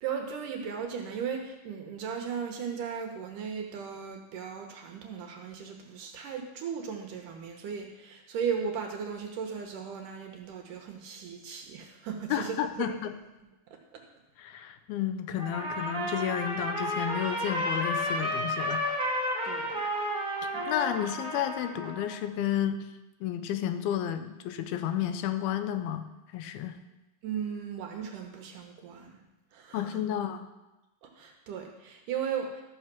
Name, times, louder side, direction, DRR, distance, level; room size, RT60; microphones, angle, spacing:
voice 1, 0.0-12.9 19.4-19.7 20.5-20.7 27.2-29.2 29.5-30.0 31.2-32.6, right 7 dB, 70° right, 3 dB, 2.3 m, -36 dB
voice 2, 12.3-13.2 14.4-18.8 20.7-22.8 23.2-26.8 29.7-30.5, left 10 dB, 85° left, 9 dB, 2.6 m, -32 dB
Trumpet, 15.4-22.1, equal, 10° right, 1.9 m, -32 dB
14.0 x 6.4 x 6.0 m, 1.0 s
omnidirectional pair, 4.4 m